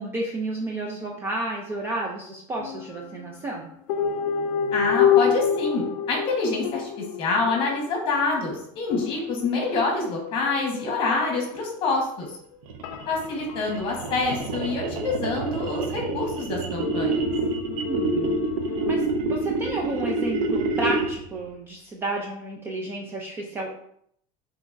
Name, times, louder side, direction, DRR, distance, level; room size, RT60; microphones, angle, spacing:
voice 1, 0.0-3.7 17.7-18.4 18.9-23.7, right 2 dB, 15° right, -1 dB, 0.3 m, -31 dB
sound 1, 2.6-3.3 3.9-8.4 8.9-12.2 12.8-15.4 16.8-19.0, left 8 dB, 90° left, 0.5 m, -29 dB
voice 2, 4.7-6.9 7.2-12.3 13.1-17.3, left 3 dB, 35° left, 0 dB, 1.2 m, -26 dB
sound 2, 12.6-21.3, right 3 dB, 85° right, 0.7 m, -27 dB
5.8 x 3.0 x 2.5 m, 0.68 s
cardioid pair, 170°, 16 cm